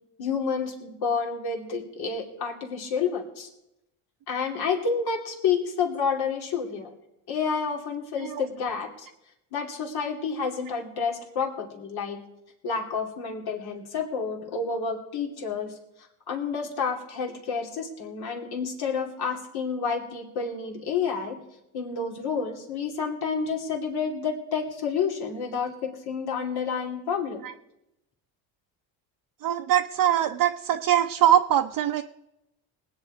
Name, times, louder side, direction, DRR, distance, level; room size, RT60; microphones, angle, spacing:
voice 1, 0.2-3.5 4.3-6.9 7.3-9.1 9.5-12.2 12.6-15.7 16.3-21.4 21.7-27.4, left 5 dB, 65° left, 2 dB, 2.7 m, -29 dB
voice 2, 29.4-32.0, right 11 dB, 55° right, 4 dB, 0.7 m, -22 dB
19.5 x 8.9 x 4.6 m, 0.87 s
supercardioid pair, 70°, 42 cm